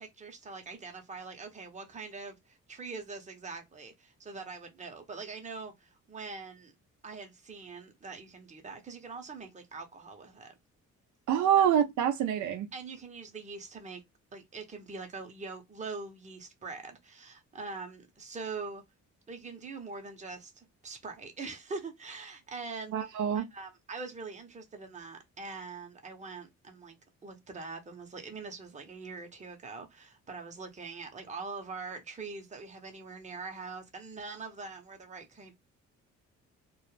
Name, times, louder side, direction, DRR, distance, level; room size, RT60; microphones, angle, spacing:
voice 1, 0.0-6.7 7.0-10.5 11.6-11.7 12.7-14.0 14.3-18.8 19.3-22.9 23.3-27.0 27.2-35.5, right 4 dB, 25° right, 0.7 m, -43 dB
voice 2, 11.3-12.7 22.9-23.4, right 9 dB, 75° right, 0.5 m, -26 dB
2.2 x 2.0 x 3.1 m
cardioid pair, 90°, 30 cm